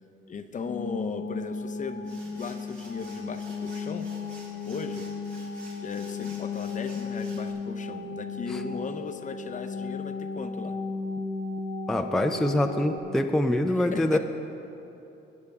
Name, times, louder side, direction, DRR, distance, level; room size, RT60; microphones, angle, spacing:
voice 1, 0.3-4.1 4.6-5.1 5.8-10.8 13.7-14.2, left 5 dB, 40° left, 8 dB, 0.7 m, -37 dB
sound 1, 0.7-13.0, left 4 dB, 65° left, 1.0 m, -35 dB
sound 2, 1.9-7.5, right 2 dB, 70° right, 3.0 m, -51 dB
voice 2, 11.9-14.2, left 1 dB, ahead, 5 dB, 0.5 m, -25 dB
17.0 x 9.6 x 3.6 m, 2.9 s
cardioid pair, 90°, 20 cm